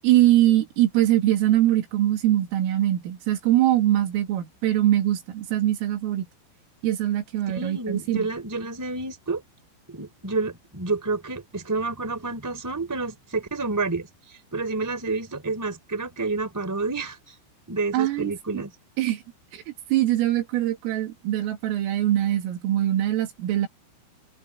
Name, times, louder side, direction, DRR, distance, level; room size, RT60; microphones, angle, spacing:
voice 1, 0.0-6.3 6.8-8.3 17.9-18.6 19.0-19.2 19.5-23.7, right 13 dB, 80° right, 5.0 m, -22 dB
voice 2, 7.5-9.4 9.9-14.1 14.5-17.3 17.7-18.7, right 3 dB, 5° right, 3.1 m, -29 dB
omnidirectional pair, 5.9 m